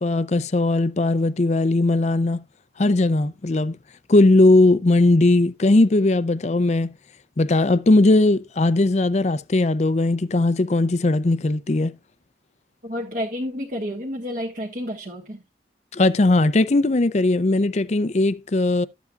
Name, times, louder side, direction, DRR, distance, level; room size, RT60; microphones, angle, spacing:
voice 1, 0.0-2.4 2.8-3.8 4.1-6.9 7.4-11.9 15.9-18.9, left 2 dB, 40° left, 0.5 m, -19 dB
voice 2, 12.8-15.4, equal, 45° right, 1.5 m, -30 dB
13.0 x 8.1 x 2.4 m
head